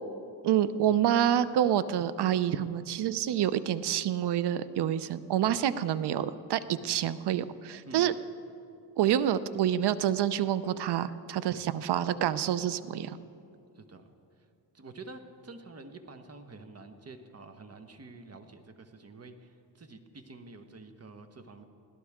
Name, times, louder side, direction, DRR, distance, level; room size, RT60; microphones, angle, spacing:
voice 1, 0.4-8.1 9.0-13.2, right 10 dB, 70° right, 15 dB, 0.7 m, -27 dB
voice 2, 6.7-7.0 7.9-8.2 11.5-11.7 13.7-14.0 14.7-21.6, right 3 dB, 35° right, 7 dB, 1.3 m, -48 dB
22.0 x 17.0 x 3.7 m, 2.6 s
cardioid pair, 85°, 41 cm